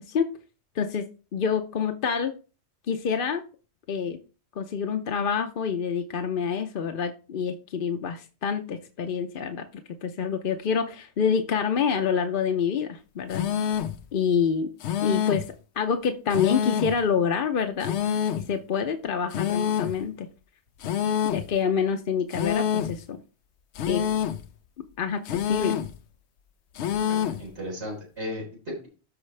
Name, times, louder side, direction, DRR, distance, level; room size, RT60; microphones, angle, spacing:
voice 1, 1.3-2.3 2.9-3.4 3.9-4.2 4.6-9.7 10.0-13.5 14.1-14.7 15.0-15.4 15.8-17.9 18.5-20.3 21.2-23.2 23.9-24.1 25.0-25.8, left 6 dB, 55° left, 6 dB, 0.8 m, -27 dB
sound 1, 13.3-14.0 14.8-15.5 16.3-17.0 17.8-18.5 19.3-20.0 20.8-21.5 22.3-23.0 23.8-24.5 25.3-26.0 26.8-27.5, left 9 dB, 85° left, 0.9 m, -27 dB
voice 2, 27.1-28.9, left 1 dB, 90° right, -1 dB, 4.1 m, -35 dB
13.0 x 4.5 x 3.2 m, 0.34 s
omnidirectional pair, 1.1 m